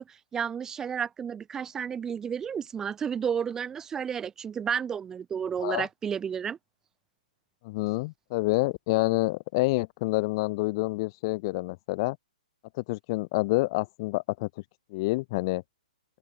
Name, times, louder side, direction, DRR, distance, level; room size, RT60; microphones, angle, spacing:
voice 1, 0.0-6.6, right 7 dB, 10° right, 6.7 m, -32 dB
voice 2, 7.6-12.2 12.8-14.5 14.9-15.6, left 23 dB, 30° left, 4.2 m, -28 dB
open air
hypercardioid pair, 150°, 5 cm